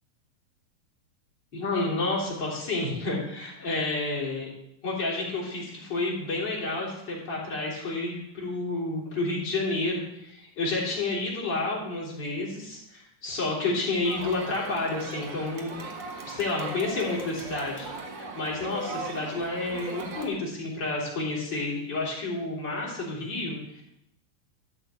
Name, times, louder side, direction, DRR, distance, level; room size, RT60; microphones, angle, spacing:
voice 1, 1.5-4.5 4.8-15.8 16.3-17.9 18.1-23.8, left 2 dB, 35° left, -3 dB, 3.4 m, -30 dB
Crowd, 14.0-20.3, right 2 dB, 45° right, 1.7 m, -38 dB
12.5 x 4.4 x 8.1 m, 0.80 s
omnidirectional pair, 3.7 m